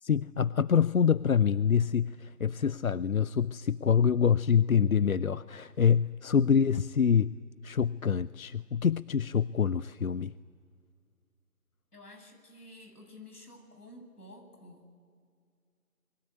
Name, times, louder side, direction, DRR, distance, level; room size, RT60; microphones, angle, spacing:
voice 1, 0.0-7.3 7.6-10.3, left 7 dB, 65° left, 18 dB, 0.6 m, -26 dB
voice 2, 11.9-15.0, left 1 dB, 80° left, 4 dB, 8.0 m, -51 dB
28.0 x 22.0 x 9.6 m, 2.2 s
figure-of-eight pair, 165°, 46 cm